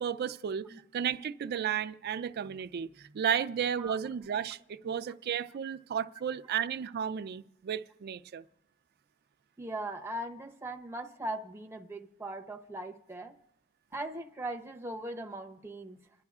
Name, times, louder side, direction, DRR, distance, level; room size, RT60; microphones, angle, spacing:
voice 1, 0.0-8.4, right 8 dB, 50° right, 0.4 m, -33 dB
voice 2, 9.6-13.3 13.9-16.0, right 1 dB, 10° right, 0.7 m, -39 dB
29.0 x 10.5 x 2.4 m
head